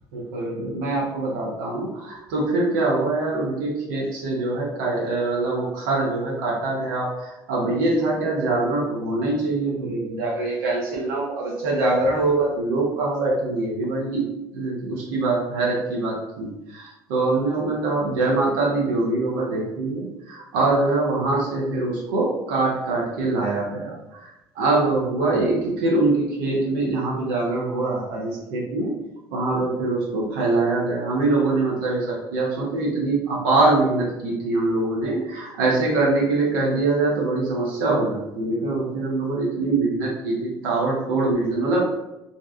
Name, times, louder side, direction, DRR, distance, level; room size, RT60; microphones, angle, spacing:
voice 1, 0.1-14.3 14.5-28.9 29.3-41.8, right 2 dB, 70° right, -4 dB, 0.6 m, -23 dB
2.5 x 2.2 x 2.3 m, 0.94 s
hypercardioid pair, 60°, 12 cm